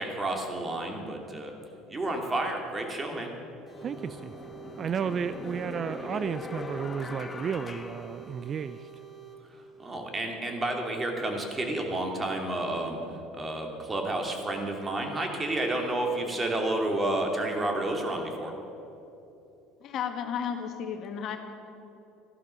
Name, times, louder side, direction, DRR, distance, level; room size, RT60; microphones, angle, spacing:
voice 1, 0.0-1.6 1.9-3.3 9.5-13.0 13.3-18.6, right 1 dB, 25° right, 2 dB, 2.7 m, -30 dB
sound 1, 3.0-3.1 3.7-8.9, left 3 dB, 25° left, 1.2 m, -41 dB
sound 2, 3.7-9.4, right 11 dB, ahead, 4.3 m, -48 dB
voice 2, 3.8-4.3 4.8-8.8, right 7 dB, 40° right, 13 dB, 0.4 m, -33 dB
voice 3, 19.8-21.4, left 7 dB, 55° left, 5 dB, 1.7 m, -33 dB
14.0 x 12.0 x 6.6 m, 2.8 s
supercardioid pair, 80°, 0 cm